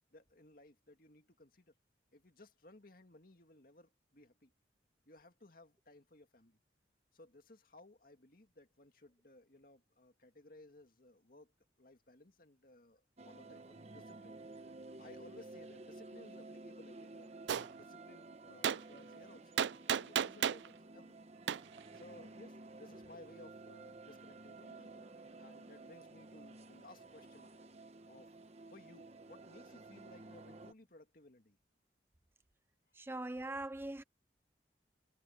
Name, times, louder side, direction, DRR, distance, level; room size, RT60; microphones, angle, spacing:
voice 1, 0.1-1.7 2.1-4.5 5.1-6.6 7.1-14.4 15.0-19.5 20.0-21.3 21.9-25.1 25.4-27.5 28.1-28.3 28.7-31.6, left 2 dB, 50° left, 2.1 m, -59 dB
sound 1, 13.2-30.7, right 2 dB, 35° right, 1.2 m, -53 dB
Gunshot gunfire, 17.5-17.7 18.6-18.8 19.6-20.7 21.5-21.6, right 8 dB, 85° right, 0.4 m, -32 dB
voice 2, 32.9-34.0, right 2 dB, 15° right, 0.5 m, -41 dB
head